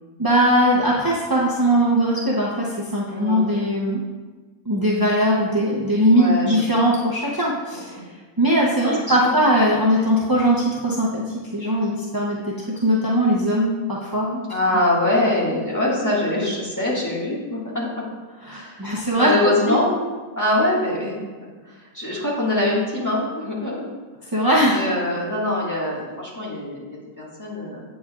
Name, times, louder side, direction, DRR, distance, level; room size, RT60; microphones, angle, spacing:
voice 1, 0.2-4.0 4.7-8.0 8.4-14.5 18.4-19.7 24.3-24.8, equal, 25° right, -6 dB, 0.5 m, -20 dB
voice 2, 3.1-3.4 6.1-6.8 7.7-8.1 8.8-9.4 14.5-18.1 18.5-19.9 20.4-23.8 24.6-27.8, left 1 dB, 10° left, -7 dB, 1.8 m, -24 dB
8.4 x 7.1 x 2.5 m, 1.3 s
omnidirectional pair, 1.6 m